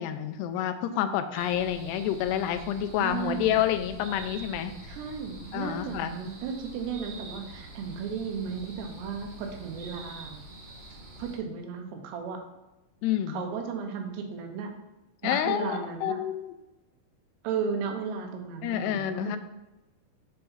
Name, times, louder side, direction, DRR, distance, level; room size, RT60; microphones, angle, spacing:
voice 1, 0.0-4.7 5.5-6.1 13.0-13.4 15.2-16.5 18.6-19.4, left 10 dB, 90° left, 9 dB, 2.7 m, -28 dB
sound 1, 1.3-11.4, right 1 dB, 65° right, 3.3 m, -45 dB
voice 2, 3.0-3.6 4.9-10.4 11.2-12.4 13.3-14.7 15.2-16.2 17.4-19.4, right 6 dB, 85° right, 4 dB, 3.1 m, -35 dB
7.6 x 4.6 x 5.5 m, 1.0 s
omnidirectional pair, 4.7 m